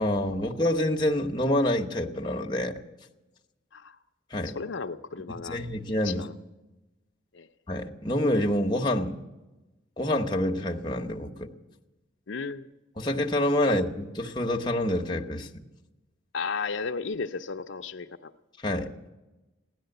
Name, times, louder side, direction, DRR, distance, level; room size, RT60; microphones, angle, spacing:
voice 1, 0.0-2.8 4.3-4.6 5.4-6.3 7.7-9.2 10.0-11.5 13.0-15.6 18.6-18.9, left 1 dB, 25° left, 1 dB, 1.0 m, -27 dB
voice 2, 4.4-5.6 6.0-6.3 7.3-7.5 12.3-12.7 13.7-13.8 16.3-18.3, left 4 dB, 70° left, 6 dB, 0.6 m, -34 dB
16.0 x 11.5 x 7.9 m, 1.1 s
head